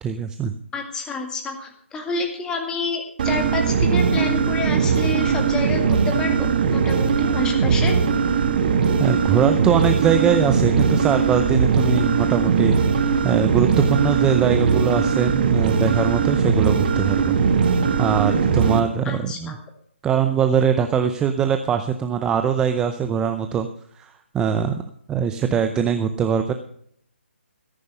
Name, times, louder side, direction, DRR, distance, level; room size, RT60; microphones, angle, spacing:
voice 1, 0.0-0.5 9.0-17.4 18.0-19.5 20.0-23.7 24.0-24.8 25.1-26.5, right 7 dB, 10° right, 8 dB, 0.6 m, -22 dB
voice 2, 0.7-8.0 19.1-19.6, left 3 dB, 10° left, 4 dB, 2.0 m, -29 dB
sound 1, 3.2-18.8, right 6 dB, 45° right, 1.7 m, -20 dB
13.5 x 11.0 x 5.5 m, 0.65 s
figure-of-eight pair, 145°, 7 cm